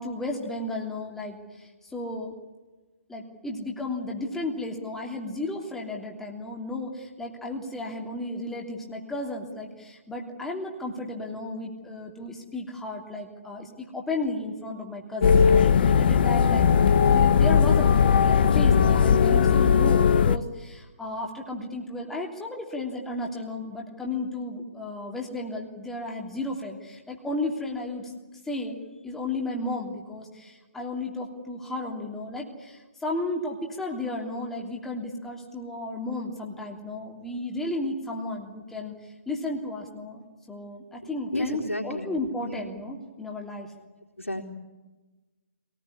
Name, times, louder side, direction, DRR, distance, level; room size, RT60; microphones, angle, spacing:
voice 1, 0.0-2.3 3.1-17.9 18.2-28.1 28.4-43.7, left 2 dB, 5° left, -1 dB, 3.0 m, -34 dB
sound 1, 15.2-20.4, left 7 dB, 50° left, 0.9 m, -19 dB
voice 2, 41.3-42.1 42.4-42.5 44.2-44.5, left 1 dB, 90° left, 2 dB, 4.0 m, -31 dB
23.5 x 19.0 x 10.0 m, 1.2 s
figure-of-eight pair, 140°, 7 cm